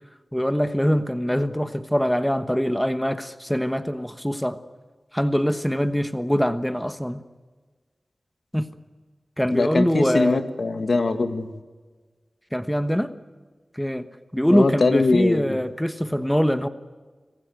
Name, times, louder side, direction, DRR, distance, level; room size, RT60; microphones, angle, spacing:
voice 1, 0.3-4.6 5.1-7.2 8.5-8.7 9.4-10.4 12.5-13.1 13.7-14.1 14.3-16.7, equal, 5° left, 10 dB, 1.2 m, -23 dB
voice 2, 9.5-11.6 14.5-15.4, left 3 dB, 70° left, 8 dB, 1.8 m, -22 dB
26.0 x 15.5 x 9.2 m, 1.4 s
wide cardioid pair, 65°, 0 cm